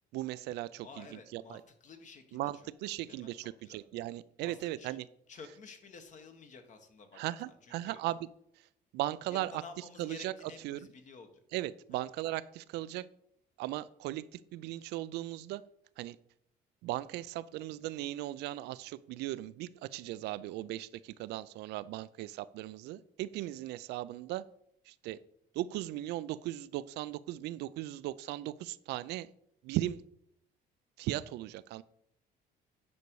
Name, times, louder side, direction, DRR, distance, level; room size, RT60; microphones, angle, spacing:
voice 1, 0.0-1.6 2.3-5.0 7.2-8.3 8.6-8.7 8.9-9.6 10.0-10.3 10.6-10.8 11.5-13.1 13.6-15.6 16.0-16.2 16.8-24.4 24.9-25.2 25.5-29.3 29.6-30.0 31.0-31.8, right 15 dB, 85° right, 17 dB, 0.4 m, -37 dB
voice 2, 0.8-3.8 4.4-5.0 5.3-8.0 9.3-11.4 11.9-12.1, left 4 dB, 45° left, 7 dB, 1.4 m, -52 dB
9.5 x 5.3 x 4.7 m, 0.72 s
cardioid pair, 110°, 17 cm